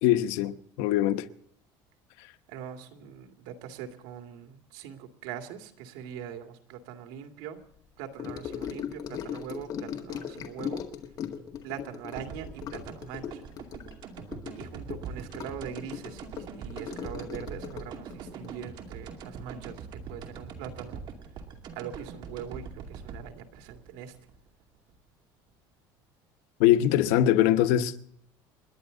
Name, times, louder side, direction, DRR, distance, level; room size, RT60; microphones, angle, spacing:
voice 1, 0.0-1.3 26.6-28.0, left 12 dB, 85° left, 1.1 m, -22 dB
voice 2, 2.5-7.6 8.0-10.8 11.6-13.4 14.5-21.0 21.7-24.2, right 9 dB, 90° right, 2.3 m, -42 dB
Gurgling / Sink (filling or washing) / Trickle dribble, 8.2-19.8 20.1-20.4 20.7-20.8, left 8 dB, 40° left, 1.8 m, -39 dB
sound 1, 12.1-25.0, right 6 dB, 50° right, 2.4 m, -43 dB
29.0 x 10.5 x 3.9 m
cardioid pair, 145°, 10 cm